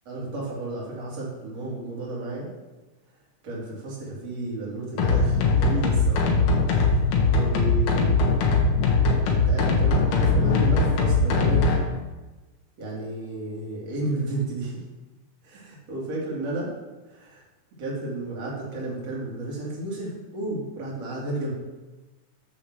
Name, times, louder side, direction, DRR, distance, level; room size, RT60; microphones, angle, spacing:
voice 1, 0.1-2.5 3.4-6.3 6.7-8.2 9.2-11.7 12.8-14.8 15.4-16.7 17.1-17.4 17.8-21.5, right 2 dB, 50° right, -4 dB, 3.4 m, -32 dB
sound 1, 5.0-11.8, left 3 dB, 70° left, 2.7 m, -20 dB
8.0 x 6.6 x 6.3 m, 1.2 s
omnidirectional pair, 3.9 m